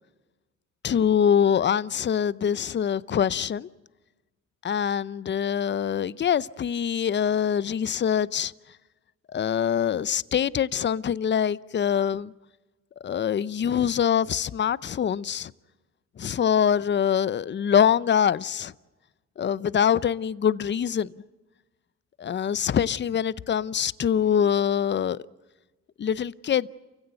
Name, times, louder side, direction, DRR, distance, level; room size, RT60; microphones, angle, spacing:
voice 1, 0.8-3.7 4.6-8.5 9.3-12.3 13.0-15.5 16.2-18.7 19.4-21.1 22.2-25.2 26.0-26.7, left 8 dB, 35° left, 0.6 m, -24 dB
28.5 x 16.0 x 7.8 m
cardioid pair, 90°, 30 cm